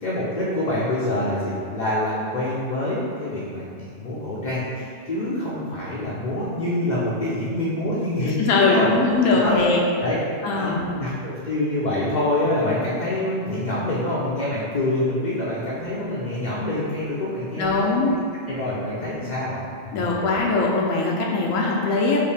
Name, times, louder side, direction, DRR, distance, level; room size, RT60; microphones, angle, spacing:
voice 1, 0.0-8.9 9.3-9.5 10.0-10.2 10.5-18.2 18.5-19.6 20.0-20.1, left 1 dB, 50° left, -7 dB, 0.6 m, -26 dB
voice 2, 8.2-9.8 10.4-10.9 17.6-18.1 19.9-22.2, left 3 dB, 85° left, -2 dB, 1.0 m, -21 dB
4.8 x 2.7 x 3.4 m, 2.3 s
omnidirectional pair, 1.3 m